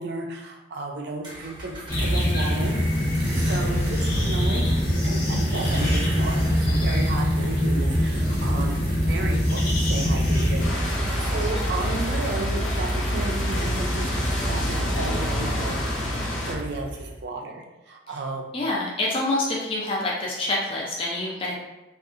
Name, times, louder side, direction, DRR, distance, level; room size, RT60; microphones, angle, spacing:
voice 1, 0.0-2.7 3.1-16.1 16.5-18.6, right 3 dB, 60° right, 1 dB, 0.4 m, -33 dB
sound 1, 1.2-17.2, right 1 dB, 25° right, 0.7 m, -28 dB
sound 2, 1.9-10.7, left 1 dB, 45° left, 0.7 m, -24 dB
voice 2, 8.3-8.7 18.5-21.5, left 2 dB, 30° left, -4 dB, 0.4 m, -27 dB
sound 3, 10.6-16.5, left 1 dB, 85° left, 0.6 m, -30 dB
2.6 x 2.4 x 2.4 m, 1.1 s
head